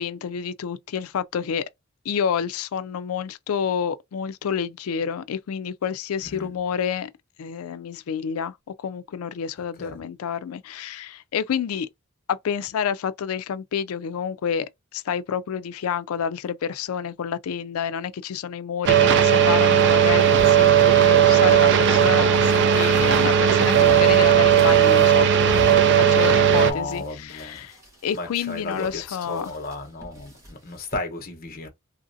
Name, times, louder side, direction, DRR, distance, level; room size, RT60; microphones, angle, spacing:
voice 1, 0.0-1.6 2.1-7.1 7.4-11.9 12.3-25.3 25.6-27.7 28.0-29.5, left 7 dB, 80° left, 0.4 m, -29 dB
sound 1, 18.8-26.7, right 8 dB, 55° right, 0.4 m, -16 dB
sound 2, 20.2-31.0, right 1 dB, 15° right, 1.0 m, -43 dB
voice 2, 22.4-22.8 23.7-23.9 26.4-27.7 28.1-31.7, left 2 dB, 45° left, 0.9 m, -34 dB
3.1 x 2.5 x 2.6 m
head